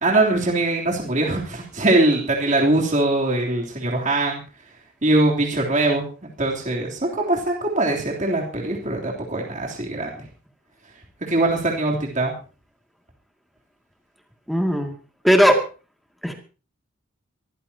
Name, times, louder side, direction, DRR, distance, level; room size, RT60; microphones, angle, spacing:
voice 1, 0.0-4.4 5.0-10.3 11.2-12.3, right 2 dB, 35° right, -2 dB, 3.4 m, -22 dB
voice 2, 14.5-14.9 15.2-15.6 16.2-16.4, equal, ahead, 3 dB, 2.4 m, -17 dB
24.0 x 15.0 x 2.9 m, 0.36 s
head